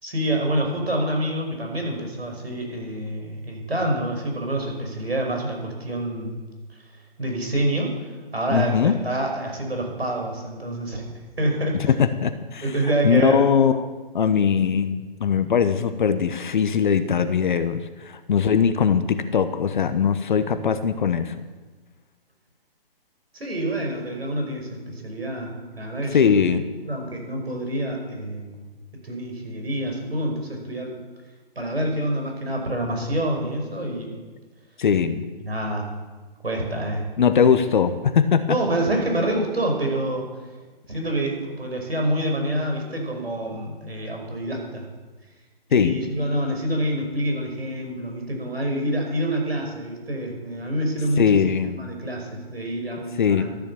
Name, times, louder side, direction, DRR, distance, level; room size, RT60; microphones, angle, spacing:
voice 1, 0.0-6.4 6.7-6.8 7.2-11.9 12.6-13.4 23.3-26.3 26.8-28.6 29.0-30.9 31.6-34.2 35.4-35.9 36.4-37.1 38.5-40.2 40.9-44.9 45.7-51.4 51.7-53.4, right 1 dB, 90° right, 1 dB, 5.5 m, -27 dB
voice 2, 8.5-9.0 12.0-12.7 13.0-13.9 14.1-21.3 26.1-26.6 34.8-35.2 37.2-38.4 45.7-45.9 51.2-51.8 53.2-53.4, left 7 dB, 55° left, 11 dB, 1.0 m, -20 dB
14.0 x 10.5 x 7.0 m, 1.3 s
figure-of-eight pair, 145°, 30 cm